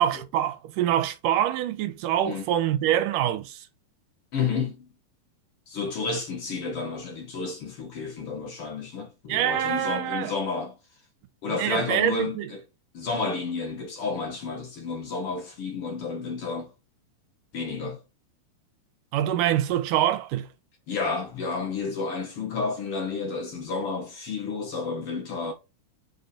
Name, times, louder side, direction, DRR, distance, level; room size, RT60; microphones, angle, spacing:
voice 1, 0.0-3.6 9.3-10.3 11.5-12.5 19.1-20.5, right 11 dB, 90° right, 2.4 m, -25 dB
voice 2, 4.3-4.9 5.7-10.8 11.4-12.6 12.9-16.7 17.5-18.0 20.9-25.5, left 4 dB, 55° left, 1.9 m, -31 dB
5.4 x 5.1 x 4.8 m
omnidirectional pair, 3.7 m